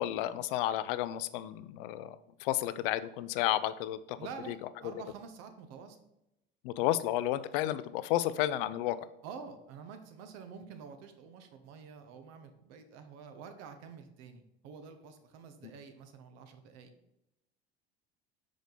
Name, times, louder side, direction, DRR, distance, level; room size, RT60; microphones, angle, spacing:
voice 1, 0.0-2.2 2.4-4.2 4.5-4.6 6.6-9.0, left 13 dB, 65° left, 15 dB, 0.5 m, -31 dB
voice 2, 4.2-6.0 6.8-6.9 9.2-16.9, right 6 dB, 60° right, 7 dB, 1.0 m, -48 dB
5.0 x 5.0 x 4.0 m, 0.86 s
hypercardioid pair, 75°, 29 cm